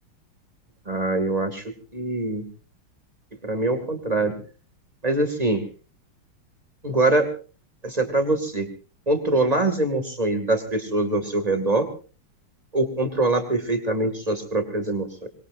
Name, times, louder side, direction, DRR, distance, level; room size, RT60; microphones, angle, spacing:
voice 1, 0.9-1.6 1.9-2.4 3.4-4.4 5.0-5.6 6.8-7.3 7.8-8.7 9.1-11.9 12.7-15.3, right 2 dB, 20° right, 7 dB, 2.6 m, -23 dB
25.0 x 21.5 x 2.7 m, 0.37 s
omnidirectional pair, 2.3 m